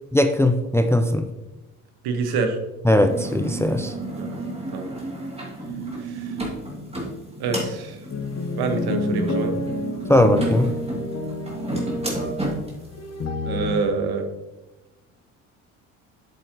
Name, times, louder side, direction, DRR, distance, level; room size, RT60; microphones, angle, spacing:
voice 1, 0.1-1.3 2.8-3.9 10.1-10.7, left 1 dB, 5° left, 8 dB, 0.6 m, -19 dB
voice 2, 2.0-2.6 4.1-4.4 4.7-5.0 6.0-6.4 7.4-8.0 8.6-9.5 13.4-14.3, right 4 dB, 60° right, 6 dB, 1.5 m, -26 dB
sound 1, 3.0-12.9, right 2 dB, 15° right, 2.6 m, -32 dB
sound 2, 8.1-13.7, left 2 dB, 35° left, 1.5 m, -28 dB
7.7 x 7.6 x 3.0 m, 1.0 s
hypercardioid pair, 65°, 42 cm